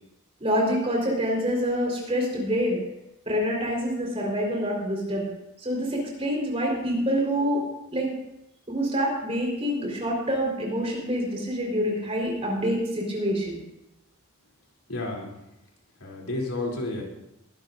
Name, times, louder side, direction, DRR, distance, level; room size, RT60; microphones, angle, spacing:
voice 1, 0.4-2.8 3.3-5.3 5.6-7.6 7.9-8.1 8.7-13.6, equal, 30° right, -1 dB, 4.3 m, -26 dB
voice 2, 14.9-15.3 16.0-17.0, left 2 dB, 85° left, -1 dB, 3.2 m, -31 dB
21.5 x 12.5 x 2.6 m, 0.87 s
head